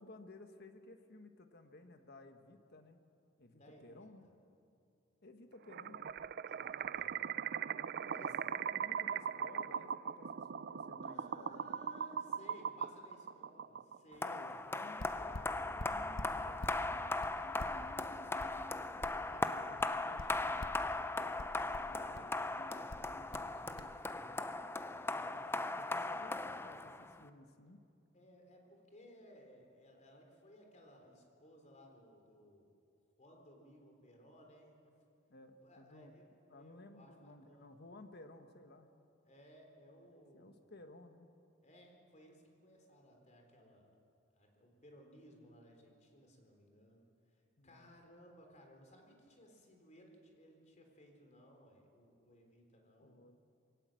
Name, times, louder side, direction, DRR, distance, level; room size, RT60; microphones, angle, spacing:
voice 1, 0.0-3.0 3.4-4.3 5.2-6.0 8.0-11.8 14.2-18.8 19.3-23.9 25.1-26.4 26.6-27.8 35.3-36.1 36.5-38.9 40.1-41.3 47.6-47.9 53.0-53.4, left 2 dB, 55° left, 7 dB, 1.5 m, -57 dB
voice 2, 3.4-4.3 6.5-7.4 8.1-8.3 11.0-14.5 14.8-15.3 18.5-19.1 19.3-19.5 21.8-22.4 24.1-24.6 28.1-32.7 33.2-34.8 35.6-37.8 39.3-40.6 41.6-43.9 44.4-53.1, equal, 40° left, 2 dB, 3.7 m, -60 dB
sound 1, 5.7-14.2, right 8 dB, 55° right, 0.4 m, -40 dB
sound 2, 14.2-27.2, left 2 dB, 10° left, 0.5 m, -38 dB
sound 3, 15.0-16.8 17.2-19.5 19.8-20.9 21.4-22.4 22.9-23.5 23.8-23.9, left 1 dB, 80° left, 1.1 m, -47 dB
22.5 x 17.5 x 7.7 m, 2.5 s
head